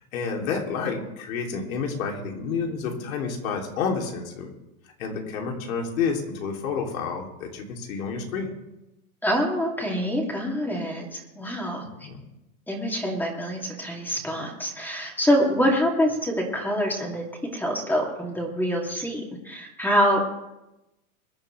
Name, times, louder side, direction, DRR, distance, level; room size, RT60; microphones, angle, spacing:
voice 1, 0.0-4.5 5.0-8.5 12.0-12.2, left 5 dB, 75° left, 1 dB, 3.2 m, -29 dB
voice 2, 9.2-11.8 12.7-17.2 17.5-20.2, equal, 5° left, -1 dB, 2.7 m, -25 dB
23.5 x 10.0 x 3.3 m, 0.95 s
supercardioid pair, 135°, 42 cm